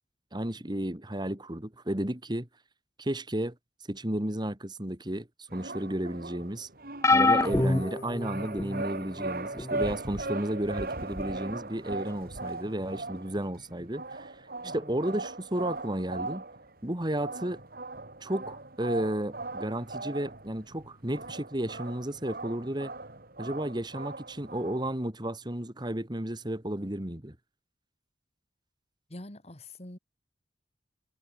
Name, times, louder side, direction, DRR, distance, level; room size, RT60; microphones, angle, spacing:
voice 1, 0.3-2.5 3.0-3.5 3.9-6.7 7.1-14.3 14.6-16.4 16.8-17.6 18.2-22.9 23.4-27.4, right 1 dB, 25° right, 2.0 m, -33 dB
sound 1, 5.5-24.9, right 2 dB, 55° right, 3.6 m, -39 dB
sound 2, 7.0-8.8 9.6-9.8 11.1-11.2, left 3 dB, 15° left, 0.6 m, -25 dB
voice 2, 14.6-14.9 29.1-30.0, left 1 dB, 35° left, 2.7 m, -45 dB
head